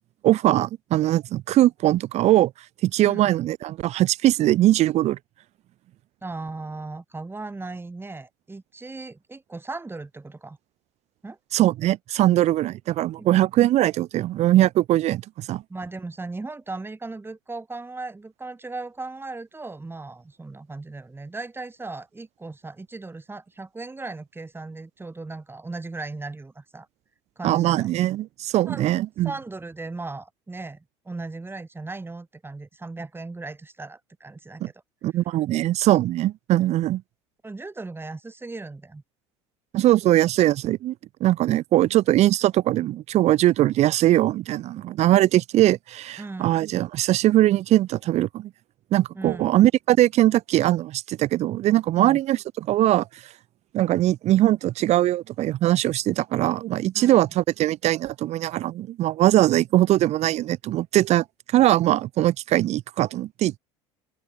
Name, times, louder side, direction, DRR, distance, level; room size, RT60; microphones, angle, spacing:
voice 1, 0.2-2.5 2.8-5.2 11.5-15.6 27.4-29.3 34.6-34.7 35.0-37.0 39.7-40.9 41.2-48.5 48.9-53.1 53.7-61.2 61.5-63.6, right 14 dB, 50° right, 1.0 m, -21 dB
voice 2, 6.2-10.6 11.2-11.4 13.2-13.3 15.7-26.9 27.4-27.9 28.7-29.0 29.2-34.7 37.4-39.0 46.2-46.7 49.1-49.6 52.0-52.2 56.9-57.3, right 3 dB, 15° right, 7.1 m, -37 dB
open air
hypercardioid pair, 70°, 15 cm